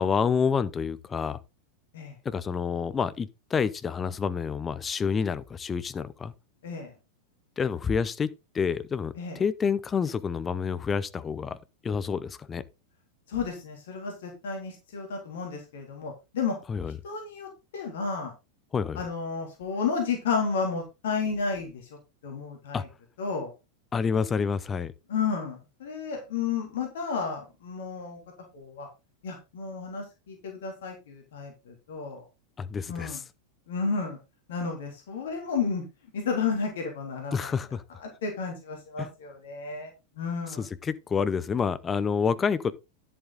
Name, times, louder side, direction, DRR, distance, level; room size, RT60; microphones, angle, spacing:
voice 1, 0.0-1.4 2.2-6.3 7.6-11.6 11.8-12.6 16.7-16.9 18.7-19.0 22.7-22.8 23.9-24.9 32.6-33.2 37.3-37.8 39.0-39.1 40.6-42.7, left 6 dB, 20° left, 0.8 m, -28 dB
voice 2, 6.6-6.9 9.2-9.4 13.3-16.6 17.0-18.3 18.9-21.8 22.2-22.9 23.2-23.5 25.1-28.2 28.5-28.9 29.2-32.2 32.9-33.2 33.7-34.2 34.5-35.8 36.1-37.5 38.0-39.9 40.2-40.7, left 5 dB, 60° left, 3.3 m, -32 dB
10.5 x 7.4 x 3.8 m
figure-of-eight pair, 90°, 0 cm